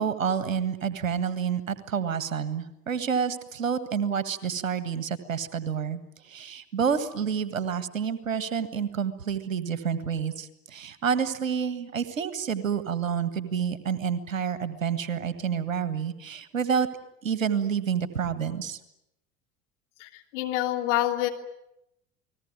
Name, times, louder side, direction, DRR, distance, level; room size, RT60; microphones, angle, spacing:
voice 1, 0.0-16.9 17.2-18.8, right 7 dB, 80° right, 12 dB, 1.8 m, -29 dB
voice 2, 20.0-21.3, left 14 dB, 60° left, 3 dB, 3.2 m, -27 dB
29.5 x 20.0 x 9.3 m, 0.87 s
figure-of-eight pair, 65°, 39 cm